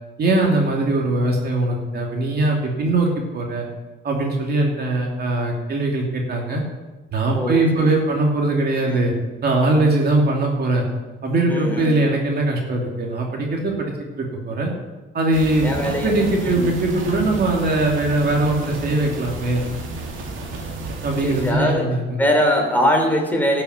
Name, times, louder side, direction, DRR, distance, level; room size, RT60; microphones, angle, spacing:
voice 1, 0.2-3.1 3.3-3.6 4.0-6.6 7.1-9.1 9.4-10.9 11.2-13.9 14.2-14.7 15.1-15.7 16.0-19.6 21.0-22.2, right 2 dB, 55° right, 0 dB, 2.8 m, -21 dB
voice 2, 7.3-7.9 8.9-9.0 11.5-11.9 15.6-16.1 16.4-16.7 21.2-21.9 22.2-23.6, equal, 10° left, 2 dB, 3.1 m, -21 dB
sound 1, 15.3-21.5, right 2 dB, 85° right, 2.4 m, -31 dB
12.0 x 7.0 x 7.8 m, 1.2 s
cardioid pair, 90°, 20 cm